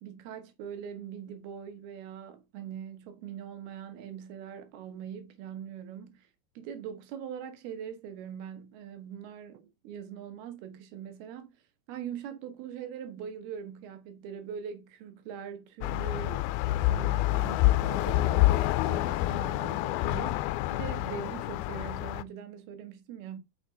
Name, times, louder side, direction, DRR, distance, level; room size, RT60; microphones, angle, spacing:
voice 1, 0.0-6.3 6.6-11.5 11.9-23.4, right 8 dB, 85° right, 3.0 m, -42 dB
sound 1, 15.8-22.2, left 17 dB, 85° left, 2.3 m, -27 dB
6.1 x 6.0 x 3.8 m
omnidirectional pair, 4.4 m